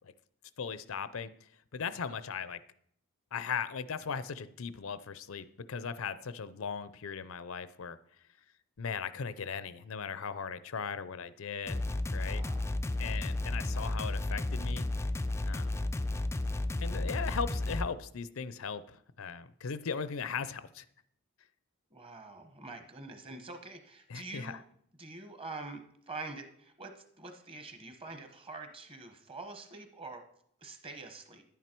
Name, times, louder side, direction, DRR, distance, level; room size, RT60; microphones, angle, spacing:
voice 1, 0.6-1.3 1.7-2.6 3.3-8.0 8.8-11.8 12.1-12.4 13.0-14.9 15.5-15.8 16.8-20.8 24.1-24.6, left 6 dB, 75° left, 15 dB, 0.6 m, -38 dB
sound 1, 11.7-17.9, left 1 dB, 15° left, 0.3 m, -33 dB
voice 2, 12.3-12.7 21.9-24.6 25.0-30.2 30.6-31.4, right 3 dB, 25° right, 7 dB, 1.1 m, -45 dB
10.5 x 9.3 x 4.5 m, 0.67 s
head